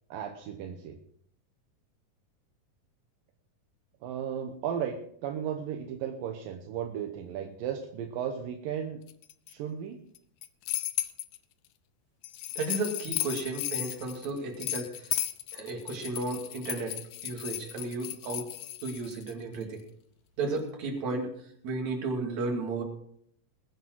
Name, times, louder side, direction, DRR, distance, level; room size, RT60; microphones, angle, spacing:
voice 1, 0.1-1.0 4.0-9.0 9.5-10.0, right 8 dB, 80° right, 4 dB, 2.7 m, -35 dB
sound 1, 9.1-9.5 10.2-11.4 12.2-19.3, left 15 dB, 75° left, 1.7 m, -35 dB
voice 2, 12.6-15.1 15.5-18.5 18.8-19.8 20.4-21.3 21.6-22.8, right 3 dB, 55° right, 2 dB, 3.6 m, -33 dB
21.0 x 9.0 x 4.6 m, 0.64 s
omnidirectional pair, 4.0 m